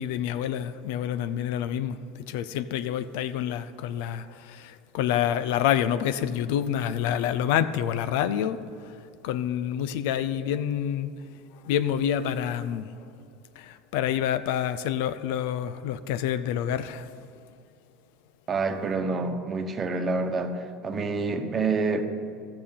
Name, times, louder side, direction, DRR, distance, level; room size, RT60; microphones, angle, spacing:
voice 1, 0.0-8.9 9.2-11.1 11.6-12.9 13.6-17.1, left 10 dB, 75° left, 13 dB, 0.5 m, -28 dB
voice 2, 18.5-22.0, right 3 dB, 30° right, 7 dB, 1.1 m, -27 dB
14.0 x 6.8 x 5.6 m, 2.4 s
supercardioid pair, 110°, 0 cm